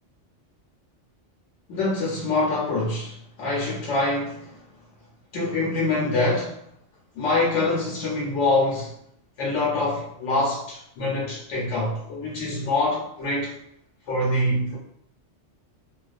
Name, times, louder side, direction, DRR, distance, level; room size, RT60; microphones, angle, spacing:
voice 1, 1.7-4.6 5.3-6.6 7.2-8.9 9.4-13.5 14.1-14.8, left 2 dB, 80° left, -5 dB, 1.0 m, -25 dB
2.3 x 2.3 x 2.4 m, 0.72 s
omnidirectional pair, 1.2 m